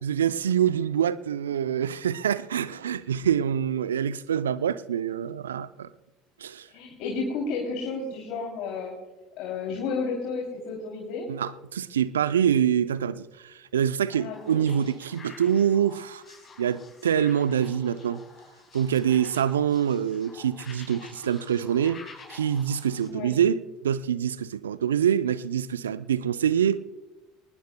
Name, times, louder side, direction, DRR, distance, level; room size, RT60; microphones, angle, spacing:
voice 1, 0.0-5.9 6.4-6.7 11.3-16.2 16.6-18.2 18.7-22.0 22.3-26.8, right 9 dB, 80° right, 0.5 m, -25 dB
voice 2, 6.7-8.9 9.4-11.3 14.1-14.7 23.1-23.4, left 4 dB, 55° left, 2.9 m, -32 dB
sound 1, 14.3-23.1, left 4 dB, 30° left, 5.7 m, -49 dB
23.0 x 19.5 x 2.2 m
hypercardioid pair, 70°, 0 cm